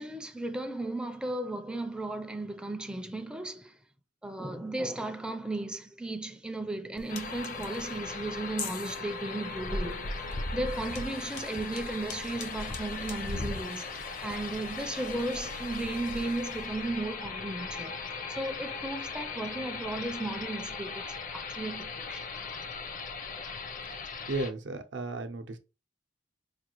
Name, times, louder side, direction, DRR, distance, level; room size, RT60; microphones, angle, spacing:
voice 1, 0.0-3.8 4.2-18.0 18.3-21.1 21.3-22.2, right 2 dB, 5° right, 0.4 m, -35 dB
sound 1, 6.9-16.7, left 6 dB, 65° left, 0.9 m, -48 dB
sound 2, 7.1-24.5, left 3 dB, 45° left, 0.6 m, -38 dB
Engine / Drill, 10.6-17.2, left 4 dB, 90° left, 2.0 m, -54 dB
voice 2, 24.0-25.6, right 2 dB, 75° right, 0.6 m, -35 dB
4.8 x 2.4 x 3.0 m
head